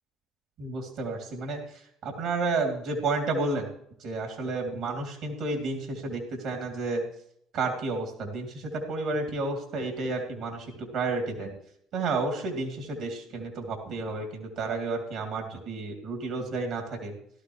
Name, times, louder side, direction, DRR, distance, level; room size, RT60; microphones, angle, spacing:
voice 1, 0.6-3.7 4.0-7.0 7.5-11.5 11.9-17.1, right 3 dB, 65° right, 1 dB, 2.8 m, -31 dB
16.5 x 12.5 x 3.2 m, 0.72 s
hypercardioid pair, 65°, 0 cm